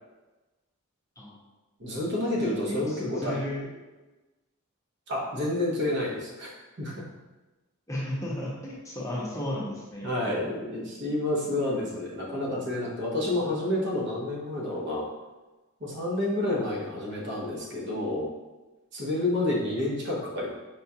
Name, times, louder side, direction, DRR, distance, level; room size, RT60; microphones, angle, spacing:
voice 1, 1.8-3.3 5.1-6.5 6.8-7.1 10.0-15.1 15.8-18.3 18.9-20.5, left 1 dB, 60° right, -4 dB, 0.9 m, -29 dB
voice 2, 2.5-3.7 7.9-10.5, left 1 dB, 15° left, -5 dB, 0.7 m, -34 dB
4.6 x 2.3 x 2.7 m, 1.1 s
head